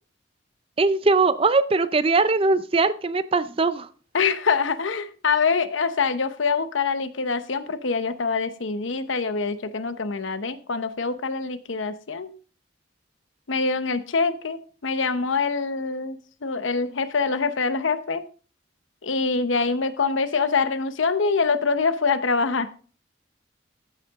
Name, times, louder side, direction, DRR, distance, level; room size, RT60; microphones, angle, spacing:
voice 1, 0.8-3.9, right 3 dB, 30° right, 14 dB, 0.5 m, -21 dB
voice 2, 4.1-12.3 13.5-18.2 19.0-22.7, left 4 dB, 85° left, 12 dB, 0.8 m, -25 dB
13.5 x 5.8 x 3.6 m, 0.40 s
head